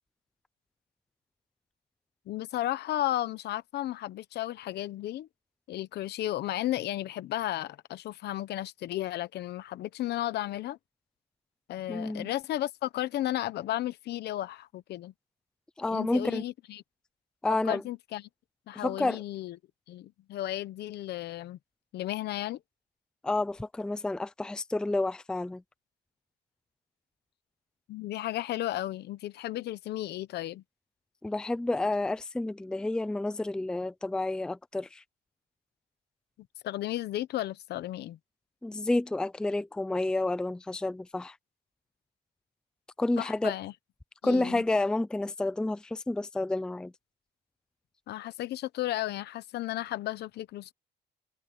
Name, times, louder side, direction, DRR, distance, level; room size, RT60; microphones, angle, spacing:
voice 1, 2.3-5.3 5.7-10.8 11.7-15.1 15.9-16.8 17.6-18.2 18.7-19.6 19.9-21.6 21.9-22.6 27.9-30.6 36.6-38.2 43.2-43.7 44.2-44.6 48.1-50.7, left 14 dB, 65° left, 1.0 m, -34 dB
voice 2, 11.9-12.3 15.8-16.4 17.4-17.8 18.8-19.2 23.2-25.6 31.2-35.0 38.6-41.4 43.0-43.5 44.2-46.9, left 2 dB, 5° left, 0.5 m, -30 dB
cardioid pair, 170°, 18 cm